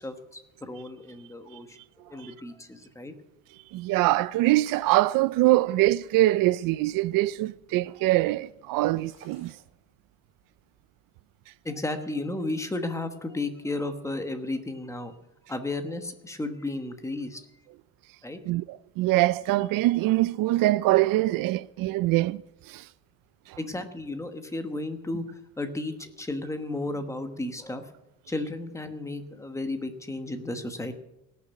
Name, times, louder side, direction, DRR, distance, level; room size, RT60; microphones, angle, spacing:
voice 1, 0.0-1.8 2.1-3.1 11.6-15.1 15.5-17.4 18.2-18.4 23.6-27.9 28.3-30.9, left 2 dB, 10° left, 1.1 m, -33 dB
sound 1, 3.0-5.2 5.7-6.0 6.5-6.6 6.8-6.9 7.1-7.7 8.1-10.7, right 5 dB, 35° right, 4.2 m, -53 dB
voice 2, 3.7-9.5 18.5-22.4 22.7-22.9 23.5-23.6, right 17 dB, 65° right, 0.5 m, -23 dB
18.0 x 7.0 x 9.3 m
cardioid pair, 165°, 36 cm